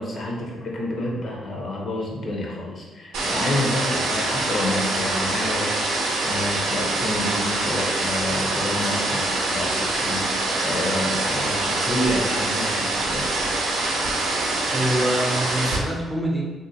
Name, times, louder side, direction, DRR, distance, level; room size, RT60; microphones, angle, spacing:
voice 1, 0.0-5.7 6.0-13.3, left 1 dB, 50° left, -2 dB, 0.8 m, -29 dB
sound 1, 3.1-15.8, right 2 dB, 90° right, 0.6 m, -24 dB
voice 2, 14.7-16.4, right 1 dB, 5° right, -2 dB, 0.6 m, -25 dB
3.0 x 2.7 x 2.8 m, 1.3 s
cardioid pair, 90°, 0 cm